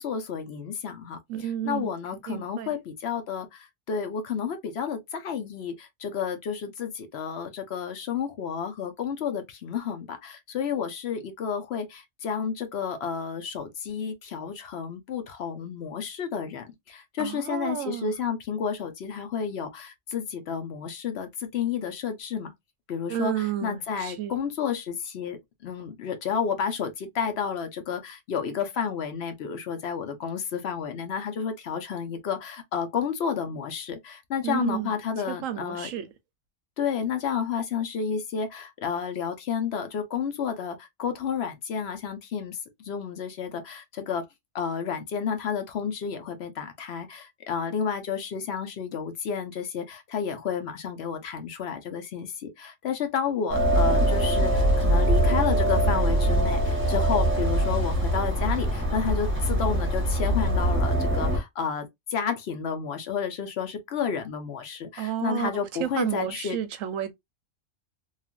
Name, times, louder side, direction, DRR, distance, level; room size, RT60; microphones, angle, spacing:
voice 1, 0.0-22.5 22.9-35.9 36.8-42.6 42.8-44.2 44.5-66.6, left 7 dB, 65° left, 0.8 m, -31 dB
voice 2, 1.3-1.9 2.3-2.7 17.2-18.1 23.1-24.3 34.4-35.0 35.3-36.1 65.0-65.5 65.8-67.1, right 10 dB, 90° right, 1.0 m, -31 dB
sound 1, 53.5-61.4, right 1 dB, 10° right, 1.0 m, -23 dB
3.1 x 2.4 x 2.2 m
omnidirectional pair, 1.3 m